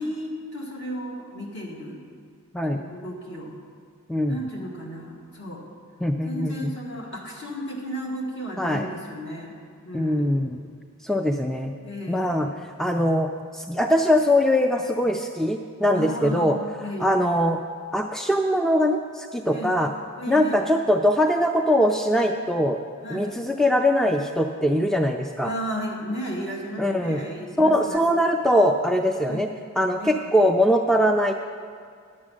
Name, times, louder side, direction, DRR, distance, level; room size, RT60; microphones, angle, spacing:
voice 1, 0.0-2.0 2.7-3.6 4.3-5.6 6.2-9.5 9.8-10.4 11.8-12.5 15.9-17.2 19.5-19.8 20.2-20.7 23.0-23.4 25.4-28.0 29.3-29.5 30.0-30.3, equal, 60° left, -2 dB, 2.0 m, -34 dB
voice 2, 4.1-4.5 6.0-6.7 8.6-8.8 9.9-10.6 11.0-11.7 12.1-12.5 12.8-13.3 13.5-16.6 17.0-17.6 17.9-19.9 20.3-22.8 23.1-25.5 26.8-27.2 27.6-29.5 29.8-31.3, equal, ahead, 4 dB, 0.3 m, -22 dB
10.5 x 7.4 x 6.2 m, 2.1 s
head